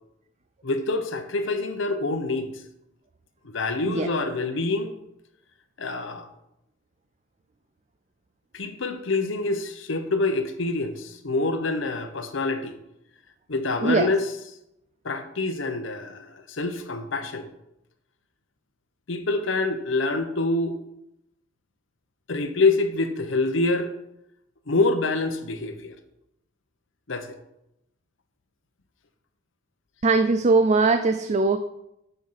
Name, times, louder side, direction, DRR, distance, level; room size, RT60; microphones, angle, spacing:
voice 1, 0.6-2.5 3.4-4.9 5.8-6.3 8.5-12.8 13.5-14.2 15.0-17.5 19.1-20.8 22.3-23.9 24.7-26.0 27.1-27.4, left 3 dB, 70° left, 8 dB, 0.9 m, -26 dB
voice 2, 13.8-14.1 30.0-31.7, right 3 dB, 35° right, 9 dB, 0.4 m, -21 dB
7.8 x 5.5 x 5.6 m, 0.83 s
head